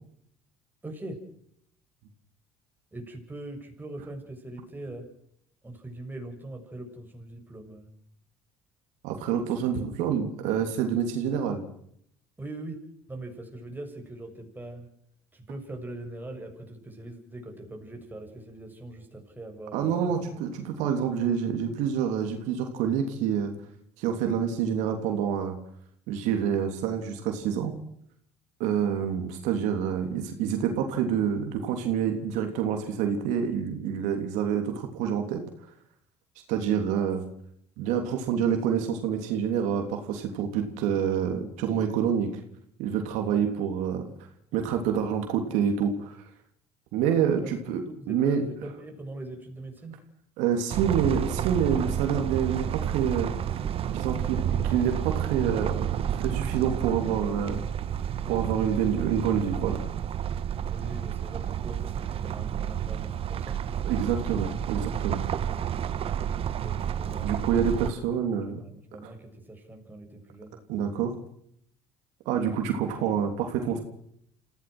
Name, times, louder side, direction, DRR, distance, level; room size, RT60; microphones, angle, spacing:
voice 1, 0.8-1.2 2.9-5.1 5.6-7.9 12.4-12.8 13.1-14.9 15.3-20.3 20.7-21.1 43.3-43.5 47.4-50.0 58.2-58.4 60.7-63.6 66.6-70.6, right 2 dB, 15° right, 3 dB, 6.8 m, -42 dB
voice 2, 9.0-11.6 19.7-23.5 24.0-25.5 26.1-27.7 28.6-35.4 36.5-37.2 37.8-42.3 42.8-44.1 44.5-46.2 46.9-47.8 48.1-48.4 50.4-53.6 53.8-57.7 58.3-59.8 63.8-65.2 67.2-68.6 69.0-69.1 70.7-71.1 72.2-73.8, right 8 dB, 80° right, 5 dB, 3.3 m, -27 dB
sound 1, 50.7-67.9, right 9 dB, 50° right, 1.6 m, -30 dB
27.0 x 16.5 x 6.2 m, 0.68 s
supercardioid pair, 85°, 12 cm